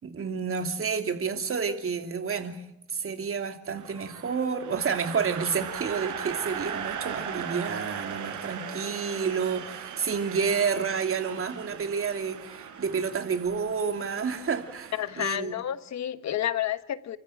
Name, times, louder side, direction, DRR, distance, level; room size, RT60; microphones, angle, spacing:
voice 1, 0.0-2.6 2.9-15.6, right 6 dB, 45° right, 2.9 m, -30 dB
sound 1, 3.8-15.3, right 7 dB, 85° right, 4.4 m, -38 dB
voice 2, 14.9-17.2, left 11 dB, 65° left, 1.3 m, -30 dB
30.0 x 14.5 x 8.9 m
cardioid pair, 90°, 30 cm